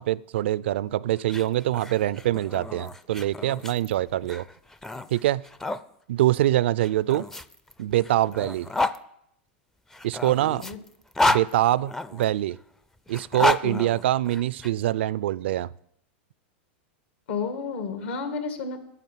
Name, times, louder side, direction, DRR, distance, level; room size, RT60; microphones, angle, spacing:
voice 1, 0.0-4.5 5.1-5.5 6.1-7.3 7.8-8.7 10.0-10.6 11.2-12.6 13.1-15.7, right 14 dB, 80° right, 20 dB, 0.4 m, -24 dB
sound 1, 1.2-5.8 6.8-9.0 9.9-12.3 13.1-14.7, left 2 dB, 5° left, 0.4 m, -30 dB
voice 2, 17.3-18.8, left 5 dB, 75° left, 7 dB, 2.1 m, -31 dB
9.9 x 7.2 x 9.2 m, 0.74 s
supercardioid pair, 135°, 6 cm